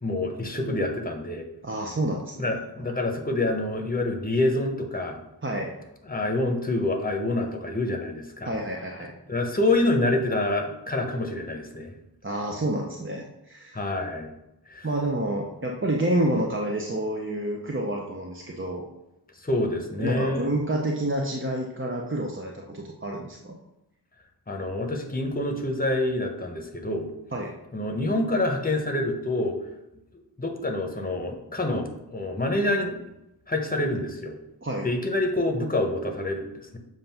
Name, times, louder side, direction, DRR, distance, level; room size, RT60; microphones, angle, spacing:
voice 1, 0.0-1.5 2.4-5.2 6.1-8.5 9.3-11.9 13.7-14.3 14.7-14.9 19.4-20.5 24.5-27.1 27.7-29.6 30.4-33.0 33.5-34.3 34.8-36.8, left 2 dB, 20° left, 3 dB, 0.9 m, -27 dB
voice 2, 1.6-2.5 2.8-2.9 5.4-5.7 8.4-9.1 12.2-13.8 14.8-18.8 20.0-23.6 27.3-27.5 34.6-34.9, right 1 dB, 30° right, -1 dB, 0.7 m, -29 dB
7.5 x 2.6 x 5.7 m, 0.90 s
wide cardioid pair, 55°, 41 cm